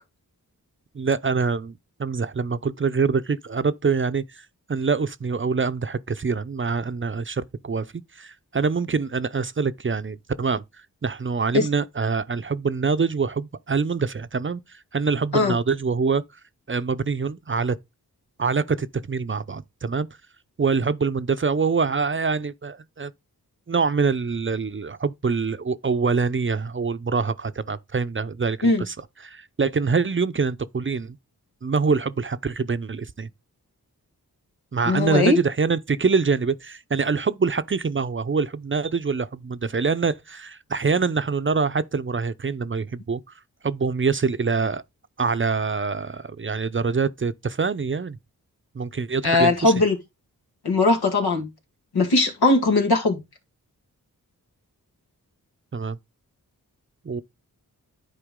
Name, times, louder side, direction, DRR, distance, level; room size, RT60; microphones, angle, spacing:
voice 1, 0.9-10.6 11.0-16.2 16.7-17.8 18.4-20.1 20.6-23.1 23.7-29.0 29.2-31.2 31.6-33.3 34.7-43.2 43.6-44.8 45.2-48.2 48.7-49.7 55.7-56.0 57.0-57.2, right 5 dB, 35° right, 0.6 m, -25 dB
voice 2, 34.9-35.4 49.2-50.0 50.6-51.5 51.9-53.2, left 2 dB, 85° left, 1.9 m, -19 dB
10.0 x 4.4 x 3.7 m
cardioid pair, 50°, 37 cm